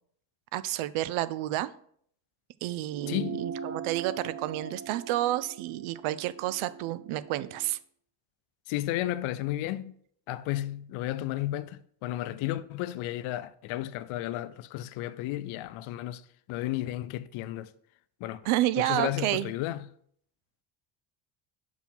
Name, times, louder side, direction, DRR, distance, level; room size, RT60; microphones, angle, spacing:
voice 1, 0.5-1.7 2.6-7.8 18.4-19.5, right 15 dB, 80° right, 0.6 m, -30 dB
sound 1, 2.9-7.7, right 6 dB, 35° right, 0.7 m, -41 dB
voice 2, 3.1-3.4 8.7-9.9 10.3-16.2 16.5-17.7 18.2-18.4 18.8-19.9, left 14 dB, 80° left, 0.6 m, -33 dB
6.1 x 4.7 x 5.4 m
cardioid pair, 160°, 47 cm